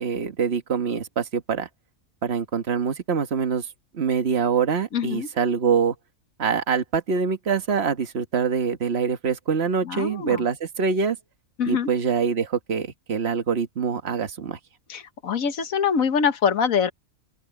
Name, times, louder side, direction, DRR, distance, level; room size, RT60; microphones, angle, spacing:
voice 1, 0.0-1.7 2.2-3.7 3.9-5.9 6.4-11.2 11.7-14.6, right 6 dB, 50° right, 1.6 m, -24 dB
voice 2, 4.9-5.3 9.8-10.4 11.6-11.9 14.9-16.9, left 6 dB, 80° left, 1.6 m, -24 dB
open air
omnidirectional pair, 1.4 m